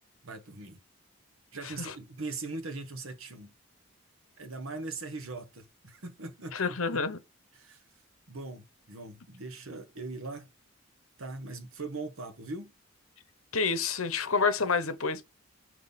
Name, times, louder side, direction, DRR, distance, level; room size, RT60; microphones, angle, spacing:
voice 1, 0.2-0.8 1.5-3.5 4.4-7.0 7.5-7.8 8.3-10.5 11.2-12.7, right 3 dB, 75° right, 1.3 m, -40 dB
voice 2, 6.5-7.2 13.5-15.2, left 4 dB, 75° left, 1.0 m, -28 dB
5.5 x 5.0 x 4.0 m
head